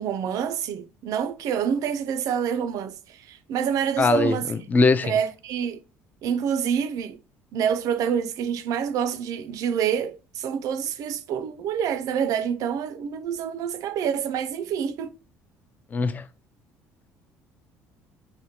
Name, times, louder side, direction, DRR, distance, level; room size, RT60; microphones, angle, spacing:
voice 1, 0.0-4.5 5.0-5.8 6.2-7.2 7.5-15.1, right 8 dB, 65° right, 0.4 m, -27 dB
voice 2, 4.0-5.2 15.9-16.3, left 4 dB, 25° left, 0.3 m, -21 dB
3.6 x 2.1 x 2.8 m
supercardioid pair, 75°, 6 cm